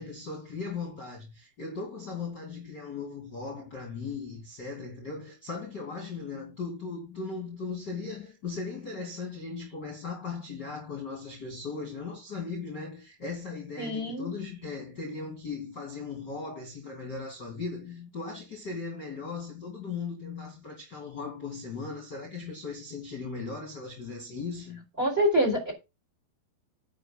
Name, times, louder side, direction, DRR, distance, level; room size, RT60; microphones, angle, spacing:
voice 1, 0.0-24.8, left 4 dB, 30° left, 2.8 m, -38 dB
voice 2, 13.8-14.3 25.0-25.7, equal, 15° right, 4.3 m, -25 dB
10.5 x 6.7 x 6.0 m
omnidirectional pair, 4.9 m